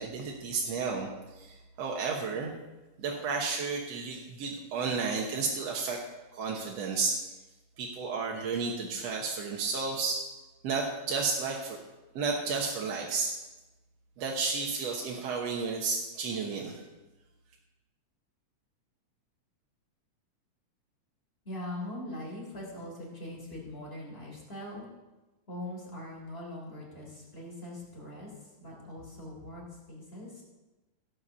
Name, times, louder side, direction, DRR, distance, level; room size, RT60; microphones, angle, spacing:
voice 1, 0.0-2.5 3.0-6.0 6.3-7.2 7.8-10.2 10.6-11.8 12.2-13.3 14.2-16.8, right 4 dB, 65° right, -1 dB, 2.2 m, -32 dB
voice 2, 21.4-24.9 25.5-30.4, left 1 dB, 20° left, -4 dB, 3.4 m, -42 dB
16.5 x 5.9 x 6.8 m, 1.1 s
omnidirectional pair, 3.3 m